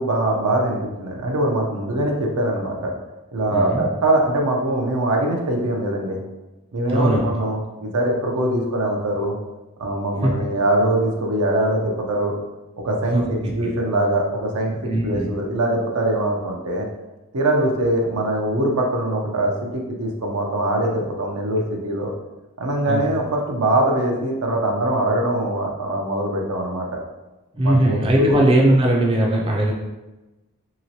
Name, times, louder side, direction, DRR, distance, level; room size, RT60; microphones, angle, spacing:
voice 1, 0.0-2.9 3.3-6.2 6.7-9.3 9.8-12.3 12.8-16.9 17.3-22.1 22.6-27.0 27.6-28.4, right 1 dB, 85° right, 1 dB, 0.6 m, -22 dB
voice 2, 3.5-3.8 6.9-7.2 10.2-10.3 13.1-13.2 14.9-15.3 22.9-23.0 27.5-29.7, right 1 dB, 25° right, -1 dB, 0.4 m, -19 dB
2.9 x 2.9 x 2.7 m, 1.1 s
head